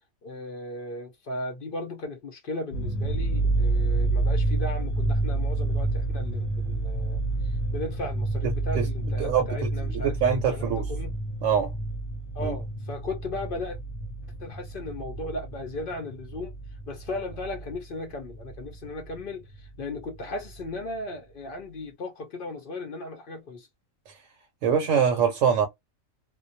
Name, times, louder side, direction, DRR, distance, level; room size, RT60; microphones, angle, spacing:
voice 1, 0.2-11.1 12.3-13.8 14.4-16.5 16.9-23.7, left 2 dB, 60° left, 0.6 m, -36 dB
sound 1, 2.7-17.8 18.1-19.2 19.5-19.6 20.0-20.6, right 2 dB, 80° left, 1.0 m, -29 dB
voice 2, 8.8-10.9 11.4-11.7 12.4-12.6 24.1-24.2 24.6-25.7, right 7 dB, 70° right, 0.9 m, -24 dB
2.2 x 2.2 x 2.6 m
omnidirectional pair, 1.4 m